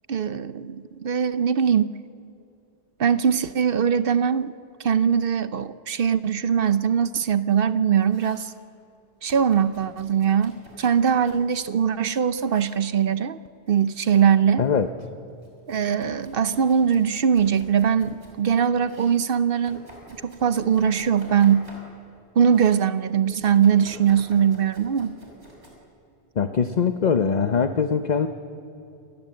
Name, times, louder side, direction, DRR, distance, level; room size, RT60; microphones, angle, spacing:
voice 1, 0.1-1.9 3.0-4.5 4.8-8.5 9.2-13.4 13.7-14.6 15.7-19.9 20.2-21.7 22.4-25.1, right 7 dB, 60° right, 13 dB, 0.8 m, -21 dB
Domestic sounds home sounds, 7.8-8.5 9.3-11.7 12.4-12.9 13.6-14.3 14.7-18.4 18.8-22.1 22.4-22.9 23.6-25.7, right 1 dB, 85° right, 5.7 m, -48 dB
voice 2, 14.6-14.9 26.4-28.3, left 6 dB, 45° left, 8 dB, 0.8 m, -22 dB
27.5 x 19.5 x 7.7 m, 2.6 s
omnidirectional pair, 1.1 m